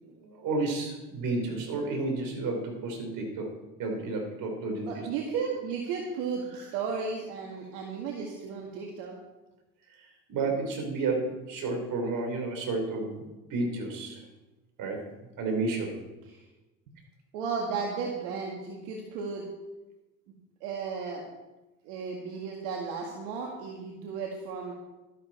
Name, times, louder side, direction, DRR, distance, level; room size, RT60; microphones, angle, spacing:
voice 1, 0.0-5.1 6.5-6.6 10.0-13.2 13.5-14.2 14.8-15.0 15.4-16.0, right 3 dB, 65° right, 3 dB, 4.5 m, -31 dB
voice 2, 4.9-9.1 16.3-16.4 17.3-19.5 20.6-21.2 21.8-24.7, right 5 dB, 85° right, -1 dB, 2.0 m, -34 dB
13.0 x 11.5 x 4.5 m, 1.1 s
supercardioid pair, 80°, 36 cm